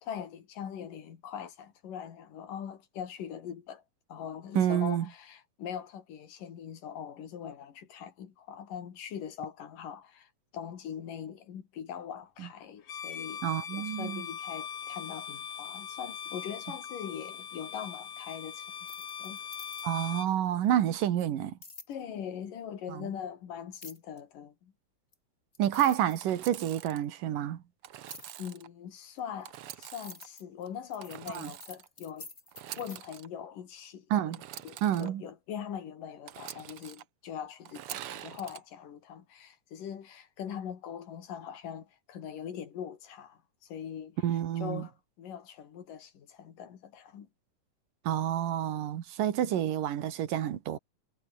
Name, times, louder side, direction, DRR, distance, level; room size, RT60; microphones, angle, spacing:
voice 1, 0.0-3.8 4.1-18.7 19.2-19.4 21.9-24.7 28.4-32.3 32.8-47.3 49.4-49.5, left 8 dB, 85° left, 4.1 m, -42 dB
voice 2, 4.5-5.1 12.4-12.5 13.4-14.2 19.8-21.6 22.9-23.1 25.6-27.6 31.3-31.5 34.1-34.4 34.8-35.2 44.2-44.9 48.0-50.8, right 11 dB, 85° right, 3.3 m, -29 dB
Bowed string instrument, 12.8-20.3, left 8 dB, 50° left, 2.6 m, -41 dB
sound 1, 18.8-20.1 21.6-21.9 23.7-24.2 25.1-25.2 25.5-26.6 28.1-28.3 29.2-33.0, left 3 dB, 25° left, 3.6 m, -49 dB
Engine / Sawing, 26.2-27.0 27.8-28.7 29.4-30.3 31.0-31.9 32.5-33.3 34.3-35.1 36.3-37.0 37.6-38.6, right 12 dB, 65° right, 1.5 m, -45 dB
omnidirectional pair, 3.7 m